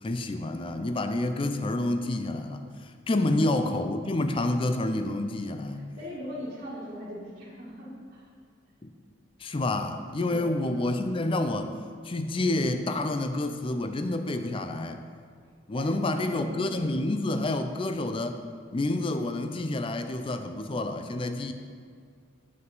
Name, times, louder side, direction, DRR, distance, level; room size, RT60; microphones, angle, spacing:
voice 1, 0.0-5.9 8.8-8.9 9.4-11.7 12.0-15.1 15.7-18.4 18.7-21.5, left 2 dB, 25° left, 7 dB, 0.4 m, -28 dB
voice 2, 5.7-8.3 10.3-10.6 15.7-17.0, equal, 40° right, -9 dB, 1.7 m, -40 dB
8.1 x 7.5 x 3.9 m, 2.1 s
head